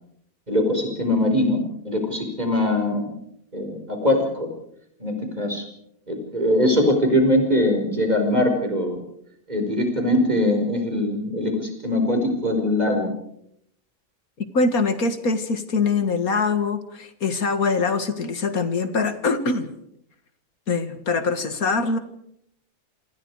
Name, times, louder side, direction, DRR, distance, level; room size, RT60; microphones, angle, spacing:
voice 1, 0.5-3.1 3.5-4.5 5.0-5.6 6.1-9.0 9.5-13.1, left 1 dB, 25° right, 4 dB, 5.2 m, -22 dB
voice 2, 14.5-19.7 20.7-22.0, left 4 dB, 65° left, 10 dB, 2.3 m, -23 dB
28.0 x 26.0 x 4.9 m, 0.73 s
omnidirectional pair, 1.7 m